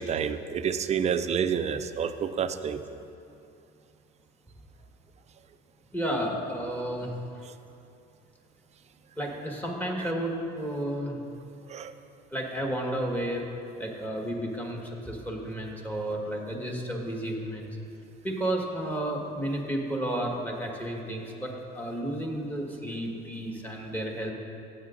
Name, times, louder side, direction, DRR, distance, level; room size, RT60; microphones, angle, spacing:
voice 1, 0.0-2.8 11.7-11.9, right 7 dB, 35° right, 10 dB, 0.5 m, -29 dB
voice 2, 5.9-7.1 9.2-11.2 12.3-13.5 13.8-17.8 18.2-24.3, right 1 dB, 10° left, -1 dB, 1.5 m, -32 dB
15.0 x 7.9 x 2.5 m, 2.6 s
supercardioid pair, 95°, 19 cm